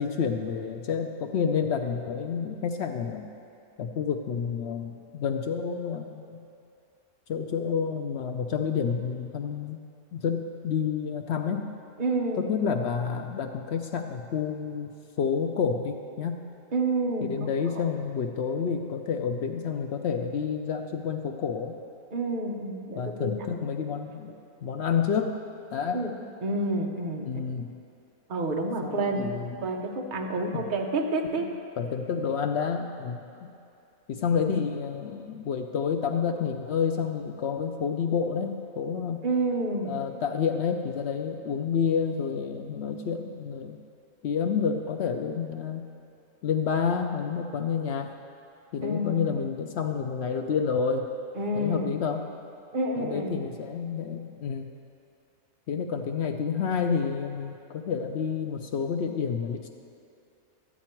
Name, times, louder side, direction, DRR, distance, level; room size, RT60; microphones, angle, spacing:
voice 1, 0.0-3.3 3.8-6.4 7.3-9.8 10.1-11.7 12.4-14.9 15.2-16.4 17.2-21.8 23.0-24.4 24.6-25.4 25.7-26.1 27.3-27.7 28.8-29.5 30.5-30.7 31.4-31.5 31.8-33.5 34.1-39.2 39.8-43.8 44.2-45.9 46.4-48.1 48.7-51.1 51.5-52.2 53.0-54.7 55.7-59.7, left 6 dB, 65° left, 5 dB, 0.7 m, -29 dB
voice 2, 12.0-12.5 16.7-17.3 22.1-23.3 25.9-26.1 26.4-27.4 28.3-29.3 29.6-31.5 39.2-39.9 48.8-49.4 51.4-51.9 52.7-53.4, right 2 dB, 40° right, 2 dB, 0.9 m, -29 dB
13.0 x 8.5 x 4.5 m, 2.6 s
omnidirectional pair, 1.5 m